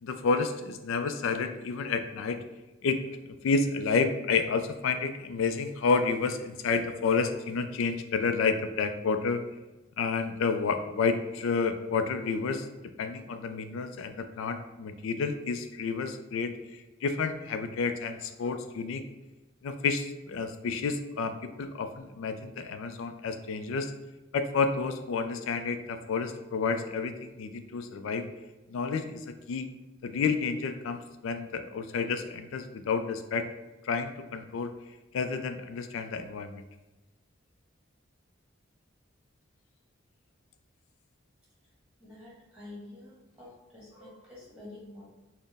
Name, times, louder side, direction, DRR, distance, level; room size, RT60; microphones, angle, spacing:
voice 1, 0.0-2.4 2.8-3.0 3.4-9.4 10.0-12.7 13.0-19.0 19.6-23.9 24.3-28.3 28.7-29.7 30.0-33.5 33.8-34.7 35.1-36.6, left 4 dB, 75° left, 8 dB, 0.3 m, -30 dB
voice 2, 42.0-45.0, left 2 dB, 5° right, -7 dB, 1.3 m, -48 dB
4.1 x 2.1 x 3.4 m, 1.1 s
head